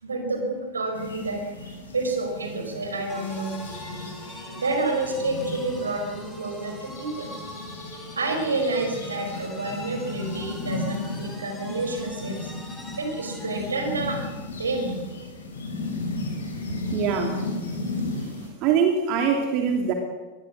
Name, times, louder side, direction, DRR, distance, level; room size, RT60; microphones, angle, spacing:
voice 1, 0.0-1.4 1.9-3.6 4.6-7.3 8.1-14.2 14.5-15.0, right 3 dB, 75° right, 4 dB, 5.0 m, -29 dB
sound 1, 0.9-18.5, left 2 dB, 70° left, 6.1 m, -35 dB
sound 2, 3.1-13.8, left 1 dB, 5° left, 4.6 m, -43 dB
voice 2, 16.9-17.4 18.2-19.9, right 6 dB, 40° right, 3 dB, 2.9 m, -24 dB
23.5 x 21.0 x 6.3 m, 1.3 s
figure-of-eight pair, 90°, 0 cm